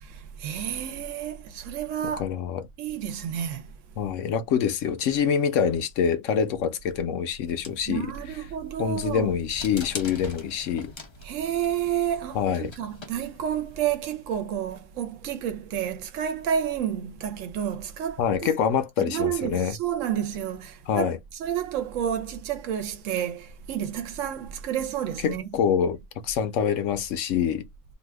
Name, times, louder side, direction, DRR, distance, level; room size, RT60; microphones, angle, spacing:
voice 1, 0.0-2.2 2.8-3.7 7.9-9.3 11.2-18.6 19.1-21.1 21.4-25.5, right 9 dB, 70° right, 0.9 m, -30 dB
voice 2, 2.2-2.6 4.0-8.1 8.8-10.9 12.3-12.7 18.2-19.8 20.9-21.2 25.2-26.0 26.2-27.6, left 7 dB, 70° left, 0.9 m, -25 dB
sound 1, 7.4-13.9, left 3 dB, 45° left, 0.3 m, -44 dB
2.7 x 2.3 x 3.2 m
omnidirectional pair, 1.4 m